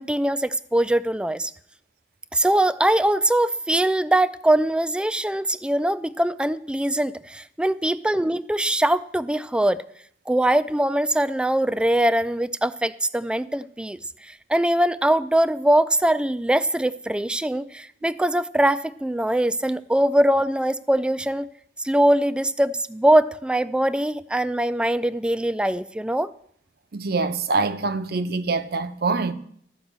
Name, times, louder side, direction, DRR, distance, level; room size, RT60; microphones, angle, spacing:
voice 1, 0.0-1.5 2.3-9.8 10.3-14.0 14.5-21.5 21.8-26.3, right 1 dB, 5° right, 0.3 m, -22 dB
voice 2, 26.9-29.3, right 3 dB, 60° right, 0.7 m, -24 dB
13.0 x 5.3 x 8.0 m
head